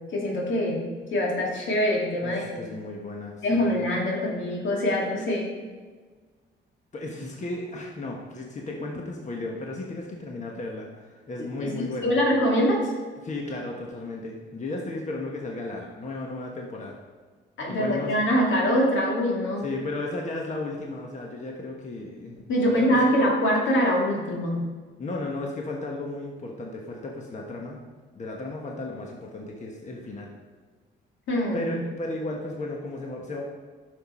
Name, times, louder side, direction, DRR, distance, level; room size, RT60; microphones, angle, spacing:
voice 1, 0.1-0.8 1.1-2.6 3.4-5.5 11.6-11.7 12.0-12.9 17.6-19.7 22.5-24.6 31.3-31.7, equal, 75° left, -2 dB, 2.2 m, -24 dB
voice 2, 2.2-3.7 6.9-12.1 13.2-16.9 17.7-18.2 19.6-23.1 25.0-27.8 28.1-30.3 31.5-33.4, left 2 dB, 35° left, 0 dB, 1.3 m, -34 dB
9.4 x 6.7 x 4.3 m, 1.4 s
cardioid pair, 90°, 20 cm